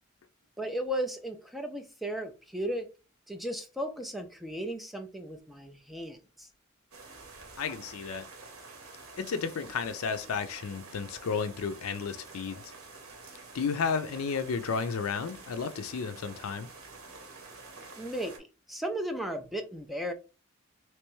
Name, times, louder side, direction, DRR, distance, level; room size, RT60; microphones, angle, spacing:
voice 1, 0.6-2.9 3.3-6.5 18.0-20.1, equal, ahead, 0.5 m, -35 dB
sound 1, 6.9-18.4, right 3 dB, 75° right, 1.0 m, -48 dB
voice 2, 7.6-8.3 9.2-12.7 13.5-16.7, left 5 dB, 80° left, 0.4 m, -32 dB
3.3 x 3.0 x 3.1 m
head